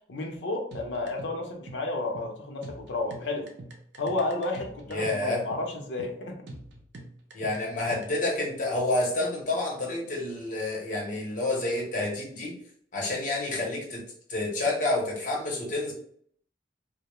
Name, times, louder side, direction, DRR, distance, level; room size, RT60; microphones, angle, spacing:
voice 1, 0.1-3.5 4.0-6.4, left 2 dB, 80° left, 2 dB, 0.6 m, -32 dB
sound 1, 0.7-8.3, right 2 dB, 65° right, 0.5 m, -45 dB
voice 2, 4.9-5.5 7.3-12.6 12.9-14.0 14.3-15.9, left 2 dB, 45° left, -2 dB, 0.8 m, -29 dB
2.2 x 2.0 x 2.9 m, 0.62 s
head